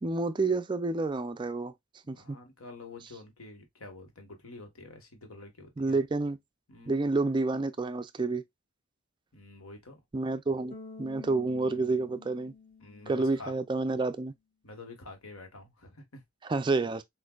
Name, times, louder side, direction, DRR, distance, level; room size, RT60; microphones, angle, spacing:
voice 1, 0.0-1.7 2.1-2.4 5.8-6.4 6.9-8.4 10.1-12.5 13.1-14.3 16.4-17.0, right 3 dB, 20° right, 0.3 m, -29 dB
voice 2, 2.1-6.0 6.7-7.4 9.3-10.0 11.3-12.0 12.8-13.5 14.6-16.2, left 2 dB, 80° left, 1.4 m, -48 dB
Bass guitar, 10.7-13.8, left 4 dB, 35° left, 1.3 m, -49 dB
6.2 x 2.6 x 2.3 m
head